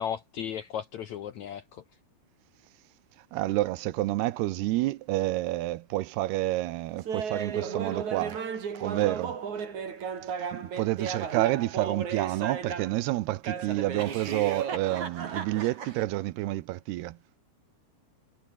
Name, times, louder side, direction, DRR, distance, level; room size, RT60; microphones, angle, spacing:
voice 1, 0.0-1.8, left 9 dB, 70° left, 1.8 m, -35 dB
voice 2, 3.3-8.4 8.7-9.4 10.4-17.2, right 17 dB, 85° right, 2.9 m, -29 dB
Laughter, 7.1-13.0 13.4-16.0, right 6 dB, 50° right, 4.4 m, -35 dB
omnidirectional pair, 4.7 m